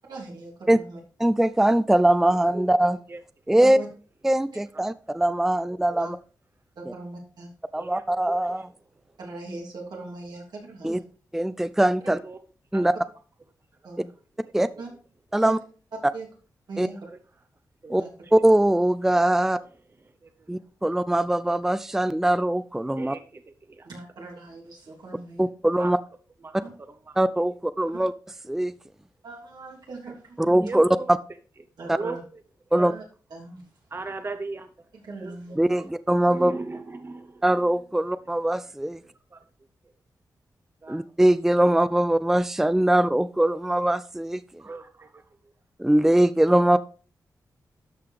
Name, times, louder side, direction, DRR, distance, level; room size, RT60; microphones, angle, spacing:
voice 1, 0.1-1.0 3.6-3.9 6.0-6.1 6.7-7.5 9.2-11.0 13.8-14.1 14.8-14.9 15.4-15.5 16.1-16.3 16.7-17.1 17.9-18.1 23.8-25.5 26.6-26.7 29.2-30.6 31.8-32.2 32.7-33.0 33.3-33.7 35.0-35.7, right 2 dB, 80° right, -2 dB, 3.0 m, -40 dB
voice 2, 1.2-3.0 3.5-3.8 4.2-6.2 7.7-8.7 10.8-11.0 11.3-12.2 12.7-12.9 14.5-14.7 15.3-15.6 16.8-16.9 17.9-18.0 18.3-19.6 20.5-23.1 25.4-26.0 27.2-28.1 28.5-28.7 30.4-30.9 31.9-32.0 32.7-32.9 35.6-36.5 37.4-39.0 40.9-44.6 45.8-46.8, right 1 dB, 5° right, 15 dB, 0.4 m, -21 dB
voice 3, 2.5-3.2 4.7-4.8 7.8-8.3 9.1-9.2 12.1-12.4 12.7-13.0 14.6-14.7 16.9-17.0 17.8-18.3 19.4-19.5 20.0-20.6 23.0-23.9 25.8-25.9 26.4-27.2 30.6-31.1 31.8-32.4 33.9-34.9 35.2-35.4 35.8-35.9 36.3-37.5 39.0-39.4 40.8-41.0 43.8-43.9 44.6-45.5, right 3 dB, 35° right, 8 dB, 0.8 m, -39 dB
12.5 x 5.6 x 3.3 m, 0.39 s
cardioid pair, 70°, 7 cm